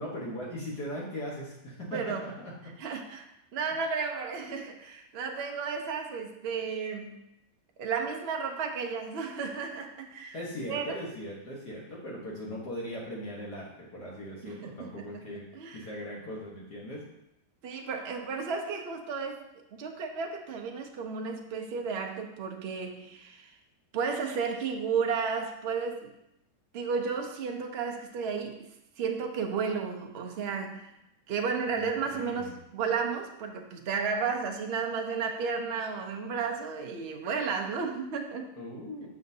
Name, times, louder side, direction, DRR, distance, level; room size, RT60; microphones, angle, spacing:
voice 1, 0.0-2.7 10.3-17.0 17.7-17.9 31.8-32.6 38.6-39.1, equal, 60° left, -5 dB, 1.7 m, -39 dB
voice 2, 1.9-2.2 2.8-7.2 7.8-10.4 10.7-11.0 14.4-15.2 15.5-15.9 17.6-19.4 19.7-23.5 23.9-26.1 26.7-28.7 29.0-30.9 31.3-38.5, right 5 dB, 80° right, 3 dB, 0.5 m, -33 dB
6.8 x 6.3 x 2.7 m, 0.84 s
omnidirectional pair, 2.0 m